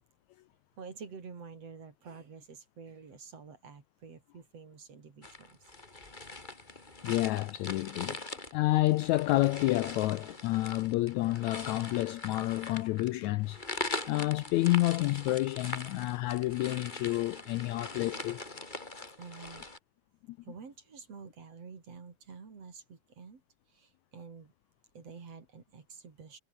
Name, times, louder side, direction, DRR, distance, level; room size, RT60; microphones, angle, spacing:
voice 1, 0.8-5.7 19.2-19.7 20.4-23.4 23.7-24.5 24.9-26.4, right 5 dB, 50° right, 4.4 m, -49 dB
sound 1, 5.2-19.8, left 2 dB, 15° left, 2.4 m, -42 dB
voice 2, 7.0-13.6 14.1-18.4 20.3-20.4, left 18 dB, 85° left, 1.6 m, -29 dB
omnidirectional pair, 3.8 m